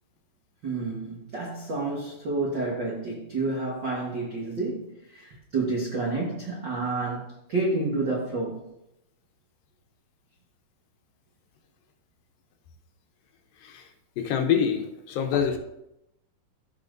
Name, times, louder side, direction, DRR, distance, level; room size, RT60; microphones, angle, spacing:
voice 1, 0.6-8.6, right 3 dB, 80° right, -4 dB, 1.0 m, -29 dB
voice 2, 14.2-15.6, left 7 dB, 75° left, 5 dB, 2.4 m, -26 dB
16.0 x 5.6 x 2.6 m, 0.84 s
omnidirectional pair, 4.4 m